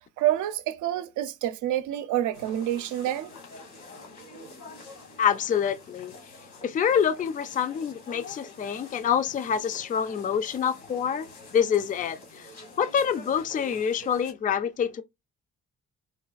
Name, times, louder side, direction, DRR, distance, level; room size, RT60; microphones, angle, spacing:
voice 1, 0.2-3.3, right 13 dB, 80° right, 0.5 m, -27 dB
sound 1, 2.3-14.3, left 2 dB, 85° left, 1.8 m, -47 dB
voice 2, 5.2-6.1 6.6-12.5 12.8-15.0, left 8 dB, 30° left, 0.4 m, -26 dB
4.0 x 2.2 x 2.4 m
cardioid pair, 90°, 30 cm